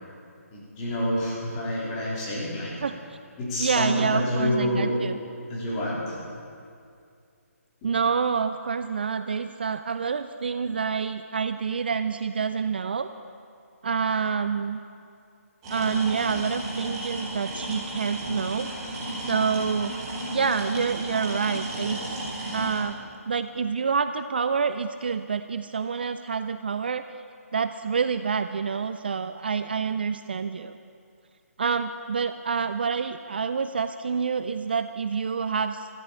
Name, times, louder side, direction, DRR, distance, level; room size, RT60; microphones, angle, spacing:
voice 1, 0.5-2.7 3.4-5.1 5.5-6.1 7.8-7.9, left 1 dB, 15° left, -7 dB, 4.0 m, -28 dB
voice 2, 3.6-5.2 7.8-13.1 13.8-14.8 15.7-18.7 19.3-19.9 20.3-22.0 22.5-23.0 23.3-27.0 27.5-30.8 31.6-35.9, right 6 dB, 40° right, 10 dB, 0.4 m, -27 dB
sound 1, 15.6-22.8, right 1 dB, 20° right, 3.2 m, -33 dB
14.5 x 12.0 x 8.3 m, 2.4 s
hypercardioid pair, 170°, 8 cm